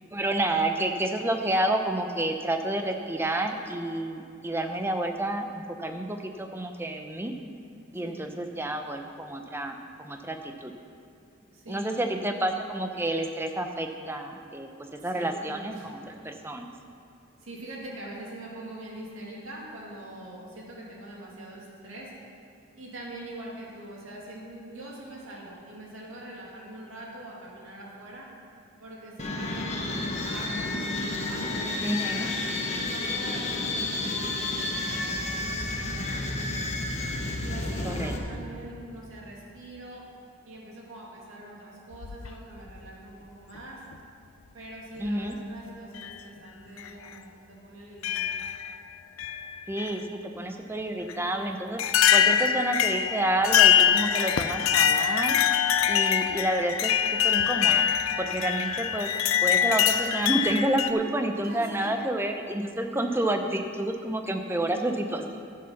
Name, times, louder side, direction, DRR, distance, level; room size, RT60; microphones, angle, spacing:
voice 1, 0.1-7.3 7.9-9.8 10.0-10.7 11.7-16.7 31.8-32.3 37.8-38.1 45.0-45.3 49.7-51.8 52.1-55.4 55.9-56.9 57.2-57.9 58.2-59.1 59.4-65.4, right 1 dB, 10° right, 5 dB, 0.6 m, -29 dB
voice 2, 11.5-12.1 15.0-16.3 17.4-22.3 22.8-28.3 28.8-32.3 32.7-36.6 37.4-40.0 40.4-43.8 44.5-48.3 54.5-54.8 61.4-61.9 63.0-63.3 64.5-64.9, right 1 dB, 75° right, -3 dB, 2.5 m, -43 dB
sound 1, 29.2-38.2, left 2 dB, 30° left, 1.0 m, -31 dB
sound 2, 41.9-42.8 43.9-44.0 45.1-45.4 46.0-46.1 46.8-46.9 48.0-48.7 49.2-50.0 51.1-51.2 51.8-60.9, left 9 dB, 80° left, 0.5 m, -24 dB
12.0 x 7.7 x 5.8 m, 2.4 s
head